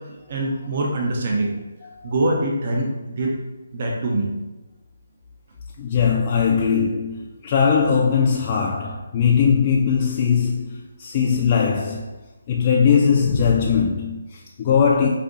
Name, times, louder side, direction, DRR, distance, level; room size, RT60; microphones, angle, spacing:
voice 1, 0.3-1.5 2.0-3.3 3.7-4.3, right 2 dB, 45° right, 0.6 m, -23 dB
voice 2, 5.8-12.1 12.5-15.1, left 6 dB, 30° left, 0.3 m, -20 dB
4.9 x 2.7 x 2.5 m
figure-of-eight pair, 155°, 0 cm